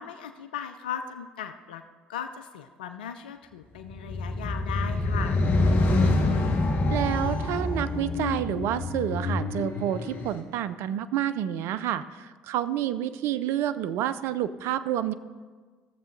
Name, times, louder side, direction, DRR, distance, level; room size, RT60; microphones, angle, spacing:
voice 1, 0.0-1.8 2.1-5.5, left 8 dB, 85° left, 8 dB, 0.4 m, -37 dB
sound 1, 3.8-10.3, left 2 dB, 50° left, 1.7 m, -26 dB
voice 2, 6.9-15.1, right 11 dB, 65° right, 14 dB, 0.5 m, -29 dB
15.5 x 7.3 x 3.9 m, 1.5 s
hypercardioid pair, 60°, 5 cm